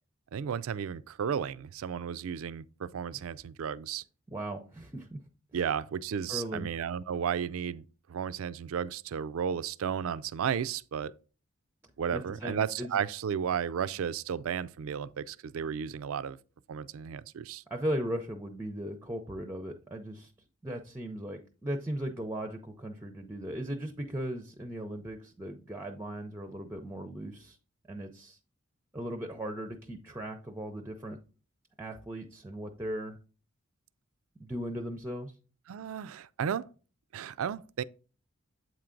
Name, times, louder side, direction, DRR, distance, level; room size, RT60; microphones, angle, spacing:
voice 1, 0.3-4.0 5.5-7.8 8.1-11.1 12.0-16.4 16.7-17.6 35.7-36.7 37.1-37.8, right 7 dB, 75° right, 0.4 m, -33 dB
voice 2, 4.3-5.2 5.5-5.6 6.3-6.7 12.1-13.0 17.7-20.3 20.6-27.6 27.9-28.4 28.9-31.2 31.8-33.2 34.4-35.3, right 1 dB, 10° right, 0.5 m, -37 dB
7.9 x 4.5 x 3.8 m
head